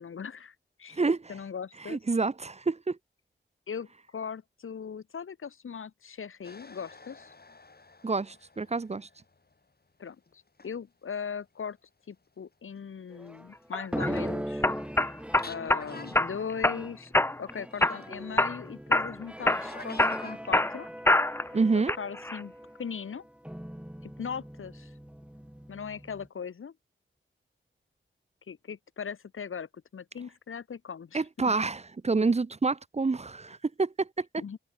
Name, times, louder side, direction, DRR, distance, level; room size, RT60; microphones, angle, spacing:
voice 1, 0.0-1.0 1.3-2.0 3.7-7.3 10.0-11.8 12.1-14.7 15.5-17.1 17.4-20.9 22.0-22.5 22.8-23.2 24.0-24.9 25.7-26.7 28.5-31.5 34.4-34.6, left 6 dB, 90° left, 1.8 m, -39 dB
voice 2, 0.9-1.4 1.8-3.0 8.0-9.1 21.5-21.9 31.1-34.3, right 4 dB, 35° right, 0.7 m, -28 dB
sound 1, 6.4-9.7 10.3-10.8 11.1-11.2 13.6-13.7 13.9-14.7 15.0-15.1 15.4-16.3 16.5-16.6 17.7-18.1 19.7-20.4, left 3 dB, 50° left, 7.9 m, -49 dB
sound 2, 13.1-13.7 13.9-26.3, equal, 5° right, 8.0 m, -40 dB
sound 3, 13.7-14.1 14.6-15.8 16.1-16.8 17.1-17.5 17.8-18.6 18.9-19.1 19.5-21.5 21.9-22.4, left 2 dB, 10° left, 0.6 m, -25 dB
cardioid pair, 60°, 20 cm